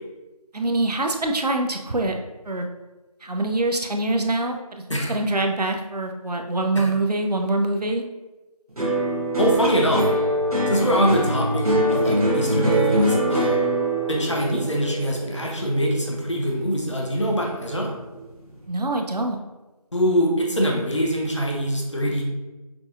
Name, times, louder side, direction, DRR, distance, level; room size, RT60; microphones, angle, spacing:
voice 1, 0.5-2.1 2.4-2.7 3.2-8.0 18.7-19.4, right 2 dB, 85° right, 4 dB, 0.6 m, -24 dB
sound 1, 8.8-17.2 17.5-18.2, right 1 dB, 65° right, 1.1 m, -23 dB
voice 2, 9.4-10.0 10.7-13.6 14.1-17.9 19.9-22.2, equal, 50° left, -1 dB, 0.8 m, -23 dB
6.0 x 2.4 x 2.5 m, 1.1 s
figure-of-eight pair, 175°, 20 cm